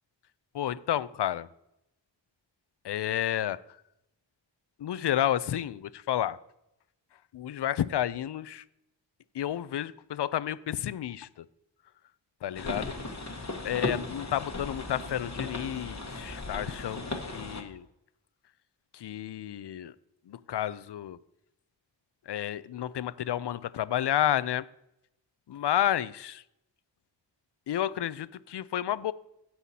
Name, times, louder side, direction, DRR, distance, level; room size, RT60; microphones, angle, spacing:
voice 1, 0.5-1.5 2.8-3.6 4.8-6.4 7.3-8.6 9.3-11.4 12.4-12.9 13.6-17.0 17.3-17.8 18.9-19.9 20.3-21.2 22.3-24.6 25.5-26.4 27.7-29.1, left 11 dB, 65° left, 17 dB, 0.5 m, -31 dB
sound 1, 12.5-17.6, left 2 dB, 40° left, 1.3 m, -36 dB
16.0 x 5.7 x 2.8 m, 0.83 s
cardioid pair, 50°, 44 cm